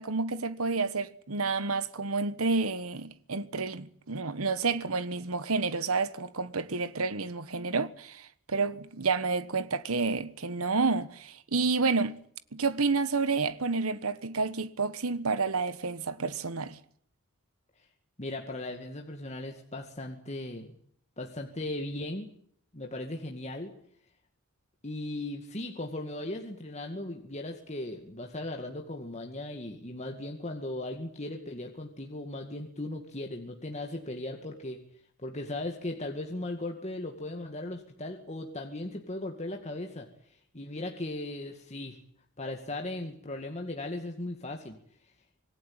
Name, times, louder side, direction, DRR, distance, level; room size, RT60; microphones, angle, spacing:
voice 1, 0.0-8.2 8.5-12.2 12.5-16.8, right 4 dB, 80° right, 1.3 m, -29 dB
voice 2, 18.2-20.7 21.2-22.3 22.7-23.7 24.8-34.8 35.2-42.0 42.4-44.8, left 1 dB, 30° left, 2.2 m, -37 dB
26.0 x 19.5 x 8.9 m
head